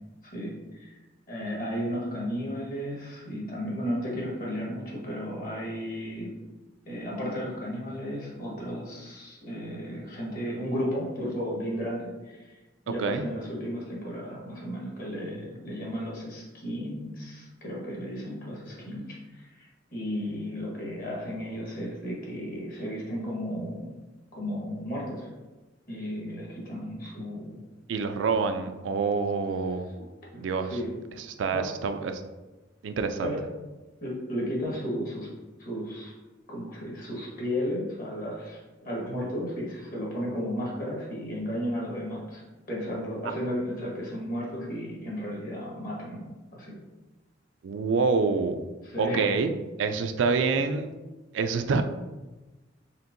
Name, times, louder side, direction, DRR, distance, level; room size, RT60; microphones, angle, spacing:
voice 1, 0.3-0.9 1.3-6.3 6.8-12.5 12.8-23.9 24.3-25.3 25.9-27.6 30.0-30.1 30.3-30.9 31.5-31.6 33.2-33.4 34.0-35.3 35.6-36.1 36.5-38.6 38.8-42.4 42.7-46.7 48.8-49.3, equal, 50° left, -4 dB, 1.4 m, -34 dB
voice 2, 12.9-13.2 27.9-29.9 30.4-30.8 31.4-32.2 32.8-33.3 47.6-48.6 49.0-49.5 49.8-50.9 51.3-51.8, right 4 dB, 70° right, 8 dB, 0.3 m, -26 dB
4.4 x 3.5 x 2.6 m, 1.1 s
head